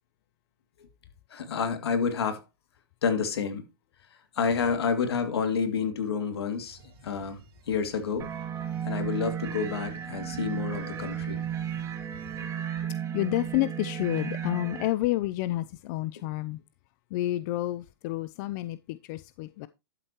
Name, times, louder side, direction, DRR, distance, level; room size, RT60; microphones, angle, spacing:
voice 1, 1.3-2.4 3.0-3.6 4.4-7.4 7.7-8.3 8.8-11.4, left 6 dB, 80° left, 2.7 m, -29 dB
sound 1, 6.5-12.5, right 3 dB, 65° right, 3.7 m, -53 dB
sound 2, 8.2-14.9, right 9 dB, 25° right, 2.0 m, -34 dB
voice 2, 13.1-16.6 17.1-19.7, left 16 dB, 45° left, 0.6 m, -29 dB
11.5 x 8.0 x 3.0 m
hypercardioid pair, 130°, 13 cm